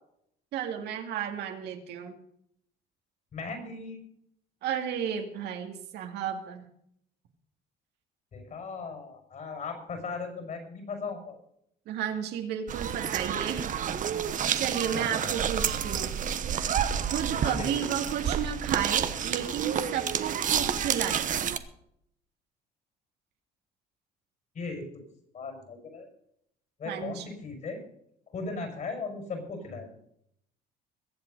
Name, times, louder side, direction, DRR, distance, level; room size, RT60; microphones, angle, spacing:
voice 1, 0.5-2.2 4.6-6.7 11.9-13.7 14.6-16.2 17.0-21.3 26.9-27.2, right 8 dB, 80° right, 4 dB, 2.2 m, -32 dB
voice 2, 3.3-4.0 8.3-11.4 14.9-15.3 17.4-17.7 24.5-24.8 25.3-26.1 26.8-27.8 28.3-29.9, left 4 dB, 50° left, 4 dB, 5.7 m, -37 dB
sound 1, 12.7-21.6, right 8 dB, 50° right, 1.1 m, -29 dB
22.0 x 7.9 x 5.3 m, 0.72 s
cardioid pair, 110°, 17 cm